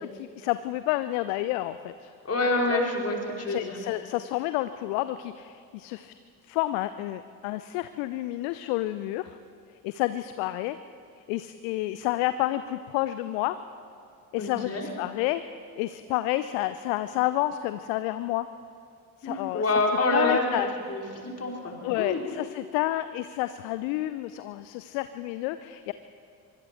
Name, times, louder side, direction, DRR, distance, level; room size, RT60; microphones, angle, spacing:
voice 1, 0.0-2.1 2.7-2.8 3.5-6.1 6.5-9.4 9.8-10.8 11.3-13.6 14.3-15.4 15.8-18.5 19.2-19.6 20.1-20.7 21.8-25.9, left 16 dB, 60° left, 13 dB, 0.7 m, -30 dB
voice 2, 2.2-3.8 14.4-14.9 19.2-22.2, left 2 dB, 30° left, 0 dB, 4.1 m, -27 dB
24.5 x 24.0 x 4.5 m, 2.4 s
figure-of-eight pair, 45°, 48 cm